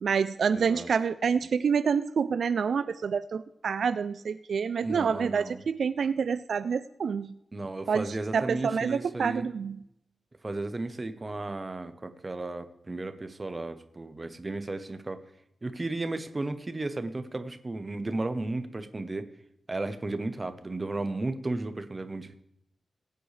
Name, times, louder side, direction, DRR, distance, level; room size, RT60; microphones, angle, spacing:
voice 1, 0.0-7.3 7.9-8.0 8.3-9.8, right 6 dB, 70° right, 12 dB, 0.4 m, -27 dB
voice 2, 0.5-0.9 4.8-5.6 7.5-9.5 10.4-15.2 15.6-19.3 19.7-22.4, right 2 dB, 25° right, 9 dB, 0.9 m, -34 dB
20.5 x 9.0 x 3.3 m, 0.78 s
wide cardioid pair, 150°, 0 cm